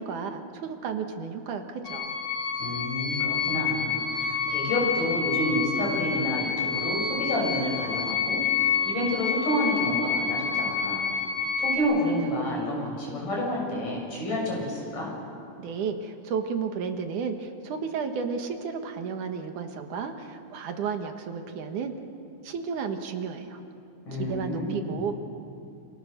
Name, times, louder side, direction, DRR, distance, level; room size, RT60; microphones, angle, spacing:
voice 1, 0.0-2.2 15.6-21.9 22.4-23.6 24.2-25.2, right 6 dB, 75° right, 6 dB, 3.1 m, -32 dB
sound 1, 1.8-11.8, left 6 dB, 40° left, 5.2 m, -28 dB
voice 2, 2.6-11.1 11.6-15.1 24.1-25.0, left 1 dB, 80° left, -2 dB, 8.5 m, -29 dB
29.0 x 27.5 x 6.8 m, 2.5 s
omnidirectional pair, 3.6 m